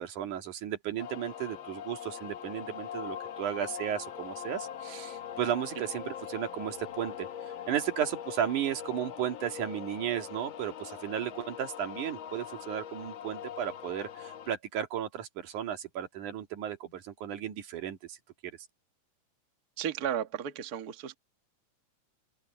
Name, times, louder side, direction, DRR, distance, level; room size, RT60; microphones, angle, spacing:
voice 1, 0.0-7.3 7.7-18.2, right 10 dB, 90° right, 3.4 m, -34 dB
sound 1, 1.0-14.5, left 9 dB, 60° left, 1.3 m, -42 dB
voice 2, 19.8-21.2, right 9 dB, 45° right, 1.4 m, -34 dB
open air
omnidirectional pair, 3.4 m